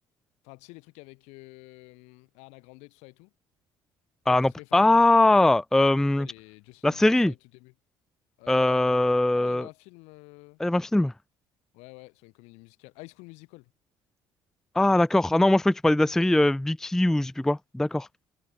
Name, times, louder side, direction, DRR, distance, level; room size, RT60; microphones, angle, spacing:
voice 1, 0.4-3.3 4.3-5.0 6.2-7.7 8.4-9.0 9.3-10.6 11.7-13.7, left 26 dB, 75° left, 7.4 m, -48 dB
voice 2, 4.3-6.3 6.8-7.3 8.5-9.7 10.6-11.1 14.8-18.1, left 2 dB, 5° left, 0.4 m, -21 dB
hypercardioid pair, 65°, 11 cm